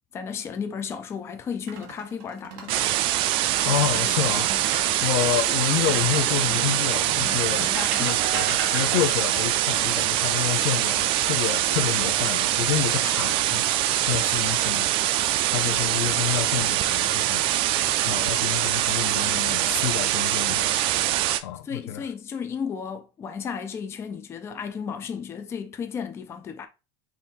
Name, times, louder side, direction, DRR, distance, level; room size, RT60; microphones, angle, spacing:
voice 1, 0.1-3.0 7.2-8.2 15.7-15.8 21.6-26.7, left 6 dB, 20° left, 0.4 m, -34 dB
sound 1, 1.5-2.9 3.3-4.9 5.8-6.9 7.5-9.3 11.3-11.9 12.3-12.6 15.5-16.1 16.8-17.4, right 7 dB, 70° right, 1.3 m, -36 dB
sound 2, 2.7-21.4, right 13 dB, 50° right, 0.4 m, -24 dB
voice 2, 3.6-7.7 8.0-14.9 15.5-17.4 18.1-20.9 21.4-22.0, left 12 dB, 85° left, 0.7 m, -29 dB
3.7 x 2.7 x 4.2 m
cardioid pair, 160°, 12 cm